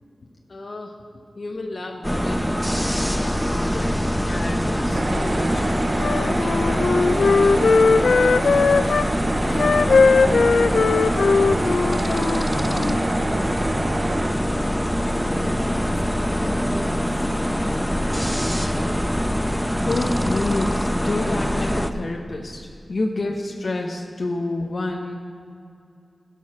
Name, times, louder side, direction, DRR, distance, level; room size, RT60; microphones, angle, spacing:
voice 1, 0.5-0.9 1.4-7.3 19.8-25.1, left 2 dB, 65° left, 0 dB, 1.0 m, -30 dB
sound 1, 2.0-21.9, equal, ahead, 0.7 m, -23 dB
sound 2, 4.9-14.3, right 3 dB, 55° right, 0.5 m, -29 dB
Wind instrument woodwind instrument, 6.0-9.1 9.5-13.0, left 4 dB, 80° left, 0.3 m, -19 dB
voice 2, 9.6-19.4, left 1 dB, 20° left, 0 dB, 2.5 m, -41 dB
13.5 x 5.6 x 6.2 m, 2.5 s
cardioid pair, 40°, 0 cm